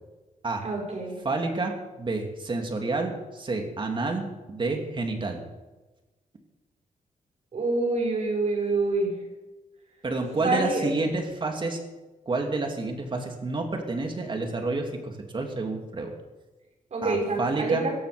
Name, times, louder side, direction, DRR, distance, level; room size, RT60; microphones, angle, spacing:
voice 1, 0.6-1.2 7.5-9.1 10.4-10.8 16.9-17.9, right 2 dB, 55° right, 0 dB, 6.0 m, -26 dB
voice 2, 1.2-5.4 10.0-11.8 12.3-16.1 17.0-17.8, right 3 dB, 35° right, 3 dB, 2.9 m, -29 dB
16.5 x 15.0 x 5.3 m, 1.1 s
wide cardioid pair, 120°, 14 cm